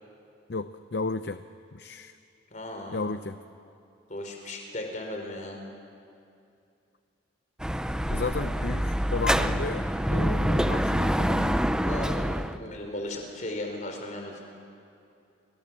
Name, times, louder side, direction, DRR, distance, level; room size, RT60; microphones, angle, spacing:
voice 1, 0.5-1.4 1.7-2.1 2.9-3.4 8.1-11.6, left 3 dB, 60° left, 10 dB, 0.7 m, -33 dB
voice 2, 2.5-3.0 4.1-5.6 11.9-14.4, left 1 dB, 40° left, 3 dB, 4.5 m, -36 dB
Dog / Motorcycle, 7.6-12.6, equal, 5° right, 0.6 m, -26 dB
30.0 x 24.0 x 7.5 m, 2.5 s
head